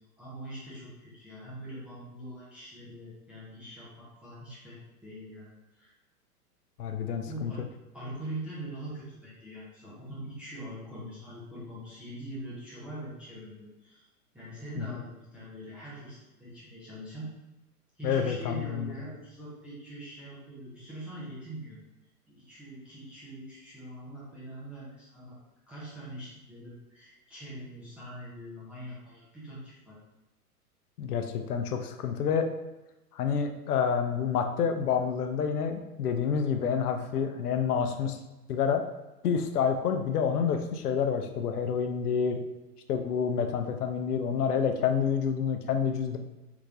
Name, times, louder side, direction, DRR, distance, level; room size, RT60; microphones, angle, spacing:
voice 1, 0.2-5.9 7.3-14.1 14.3-17.3 18.0-21.8 22.3-25.4 25.7-30.0, right 1 dB, 5° right, -10 dB, 0.4 m, -43 dB
voice 2, 6.8-7.5 14.8-14.9 18.0-18.9 31.0-32.5 33.1-38.2 38.5-38.8 39.2-42.4 42.9-46.2, left 7 dB, 75° left, 6 dB, 0.6 m, -28 dB
3.5 x 3.1 x 2.5 m, 1.0 s
hypercardioid pair, 110°, 47 cm